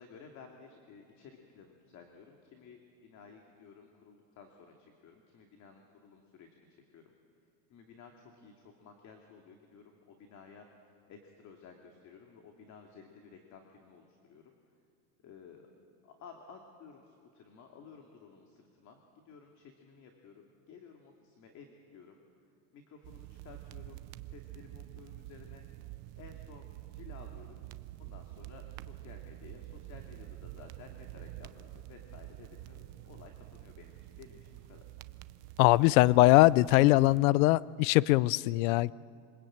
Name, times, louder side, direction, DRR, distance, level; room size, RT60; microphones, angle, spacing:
voice 1, 0.0-7.1 7.7-14.5 15.2-15.7 16.0-22.2 22.7-24.0 24.3-25.6 26.2-27.6 28.0-34.9, left 5 dB, 35° left, 3 dB, 2.5 m, -54 dB
sound 1, 23.0-37.2, right 16 dB, 35° right, 0.6 m, -48 dB
voice 2, 35.6-38.9, left 19 dB, 60° left, 21 dB, 0.6 m, -22 dB
27.5 x 24.5 x 8.8 m, 2.3 s
supercardioid pair, 160°, 48 cm